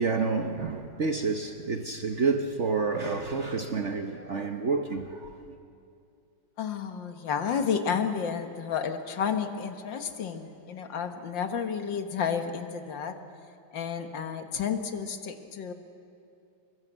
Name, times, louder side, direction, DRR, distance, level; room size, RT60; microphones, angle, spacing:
voice 1, 0.0-5.6, right 4 dB, 45° right, 1.0 m, -29 dB
voice 2, 6.6-13.2 13.7-15.7, left 7 dB, 70° left, 2.0 m, -31 dB
24.5 x 22.5 x 8.0 m
omnidirectional pair, 2.2 m